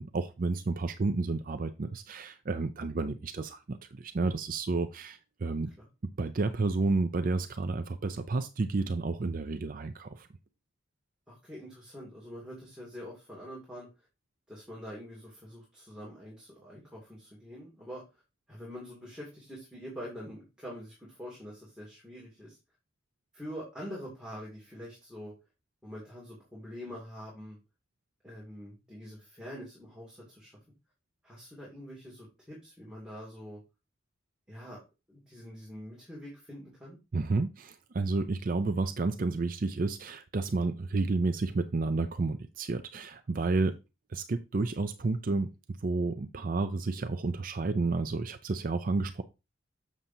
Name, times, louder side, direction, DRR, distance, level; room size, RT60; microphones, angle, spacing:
voice 1, 0.0-5.7 6.2-10.3 37.1-43.8 44.1-49.2, right 3 dB, 45° right, 0.4 m, -31 dB
voice 2, 11.3-13.9 14.5-18.0 18.5-22.6 23.3-25.3 25.8-27.6 28.2-30.5 31.2-33.6 34.5-34.8 35.1-37.0, equal, 5° right, 2.5 m, -45 dB
7.4 x 6.6 x 2.8 m
head